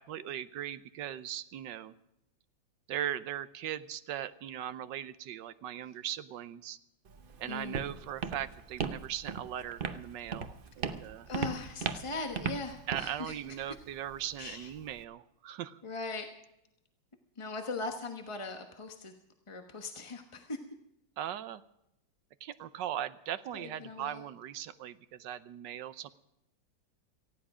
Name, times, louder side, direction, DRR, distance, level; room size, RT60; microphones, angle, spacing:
voice 1, 0.0-1.9 2.9-6.8 7.4-11.3 12.9-15.8 21.2-21.6 22.4-26.1, right 11 dB, 70° right, 14 dB, 1.3 m, -39 dB
Walk footsteps, 7.1-15.0, right 6 dB, 85° right, 0.4 m, -39 dB
voice 2, 7.5-7.8 11.3-13.4 14.4-14.7 15.8-16.3 17.4-19.1 19.5-20.6 23.5-24.2, left 3 dB, 20° left, 4 dB, 0.8 m, -39 dB
18.5 x 15.0 x 4.9 m, 0.83 s
omnidirectional pair, 2.2 m